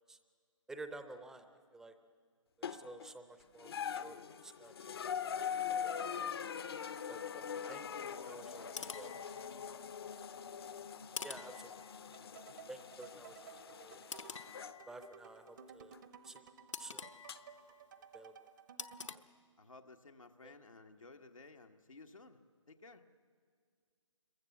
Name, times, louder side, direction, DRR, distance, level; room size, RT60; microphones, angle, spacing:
voice 1, 0.7-1.5 1.7-1.9 2.7-4.2 4.4-4.9 5.8-5.9 7.1-8.6 8.9-9.1 11.2-11.8 12.7-13.5 13.8-14.0 14.9-16.0 16.2-16.5 16.8-17.1 18.1-18.3 19.0-19.2 20.4-20.5, right 2 dB, 5° right, 9 dB, 0.7 m, -51 dB
sound 1, 2.6-3.1 3.6-14.8 15.9-16.0 17.3-17.4, left 8 dB, 50° left, 0.8 m, -42 dB
voice 2, 7.6-9.0 19.6-22.4 22.7-23.0, left 3 dB, 85° left, 3 dB, 1.4 m, -56 dB
sound 2, 8.5-10.0 11.2-12.4 14.1-15.4 16.7-18.0 18.8-19.2, left 5 dB, 70° left, 1.0 m, -48 dB
sound 3, 12.1-19.2, right 7 dB, 40° right, 0.9 m, -57 dB
26.5 x 22.5 x 7.2 m, 2.1 s
figure-of-eight pair, 145°, 17 cm